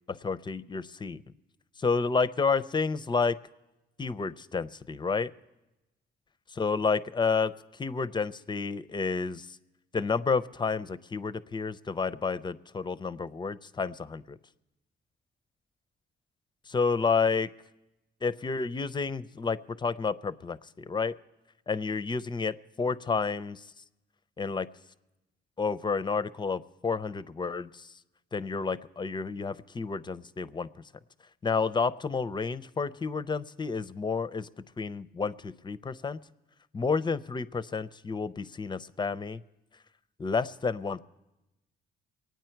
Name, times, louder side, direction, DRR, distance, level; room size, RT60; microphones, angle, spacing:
voice 1, 0.1-1.2 1.8-3.4 4.0-5.3 6.6-7.5 7.8-9.6 9.9-14.4 16.7-17.5 18.2-21.2 21.7-23.6 24.4-24.7 25.6-27.9 28.3-30.7 31.4-34.5 34.8-36.2 36.7-39.4 40.2-41.0, left 4 dB, 25° left, 16 dB, 0.5 m, -30 dB
23.5 x 9.2 x 4.5 m, 0.98 s
cardioid pair, 90°, 20 cm